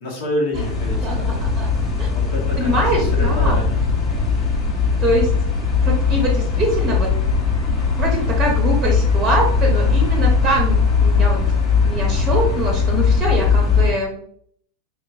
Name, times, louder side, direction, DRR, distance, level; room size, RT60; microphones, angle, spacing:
voice 1, 0.0-1.4 2.1-3.8, left 1 dB, 50° left, -2 dB, 1.4 m, -28 dB
sound 1, 0.5-13.9, left 5 dB, 25° left, 1.3 m, -19 dB
voice 2, 1.0-1.7 2.0-2.1 2.6-3.6 5.0-5.3 5.8-7.1 8.0-10.7 11.0-11.4 11.8-14.1, right 1 dB, 20° right, 0 dB, 0.9 m, -23 dB
4.6 x 2.9 x 2.6 m, 0.64 s
figure-of-eight pair, 90°, 0 cm